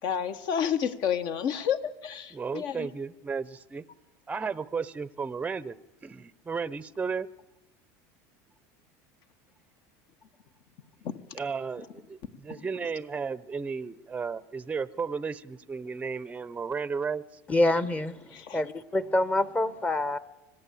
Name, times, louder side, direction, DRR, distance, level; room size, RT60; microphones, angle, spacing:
voice 1, 0.0-2.9 11.0-11.1 12.3-12.7 17.8-17.9 18.3-18.6, left 8 dB, 55° left, 1.6 m, -30 dB
voice 2, 2.3-3.8 4.3-5.8 6.0-7.3 11.3-17.2, right 5 dB, 15° right, 0.7 m, -34 dB
voice 3, 17.5-18.2 18.5-20.2, left 1 dB, 15° left, 1.0 m, -26 dB
25.0 x 17.5 x 8.5 m
supercardioid pair, 125°, 9 cm